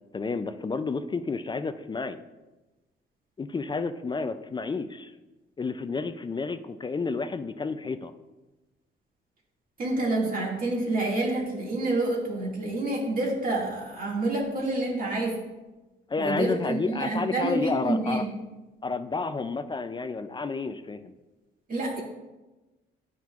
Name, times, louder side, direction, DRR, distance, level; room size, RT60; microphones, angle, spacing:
voice 1, 0.1-2.2 3.4-5.1 5.6-8.1 16.1-18.2 18.8-21.1, left 4 dB, 25° left, 10 dB, 0.4 m, -30 dB
voice 2, 9.8-15.4 16.2-18.3 21.7-22.0, right 2 dB, 45° right, -2 dB, 2.1 m, -28 dB
10.5 x 5.8 x 2.4 m, 1.1 s
cardioid pair, 90°, 20 cm